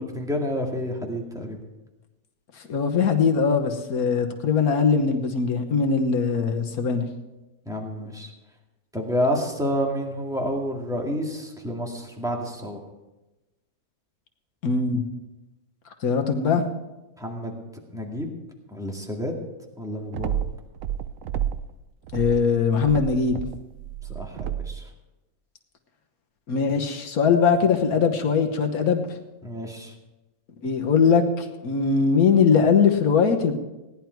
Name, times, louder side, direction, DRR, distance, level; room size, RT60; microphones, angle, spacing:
voice 1, 0.0-1.6 7.7-8.3 8.9-12.8 17.2-17.5 17.9-18.3 18.7-19.3 19.8-20.3 24.1-24.8 29.4-29.9, equal, ahead, 0 dB, 2.0 m, -29 dB
voice 2, 2.7-7.0 14.6-15.0 16.0-16.6 22.1-23.4 26.5-29.0 30.6-33.5, left 5 dB, 80° left, 4 dB, 1.6 m, -21 dB
sound 1, 20.1-21.7 22.1-24.8, right 10 dB, 70° right, 1.0 m, -31 dB
17.5 x 10.5 x 4.6 m, 1.0 s
omnidirectional pair, 1.5 m